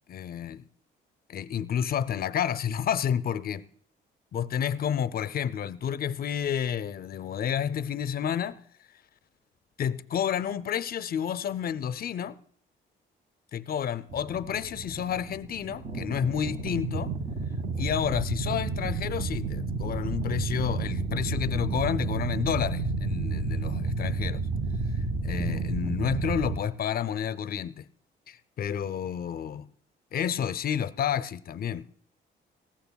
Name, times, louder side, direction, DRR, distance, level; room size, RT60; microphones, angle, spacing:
voice 1, 0.1-0.7 1.3-3.7 4.3-8.6 9.8-12.4 13.5-17.1 17.8-24.5 25.2-27.9 28.3-29.7 30.1-32.0, left 8 dB, 50° left, 0.5 m, -30 dB
sound 1, 14.1-26.6, right 3 dB, 45° right, 1.5 m, -31 dB
19.0 x 14.5 x 2.3 m
cardioid pair, 90°, 20 cm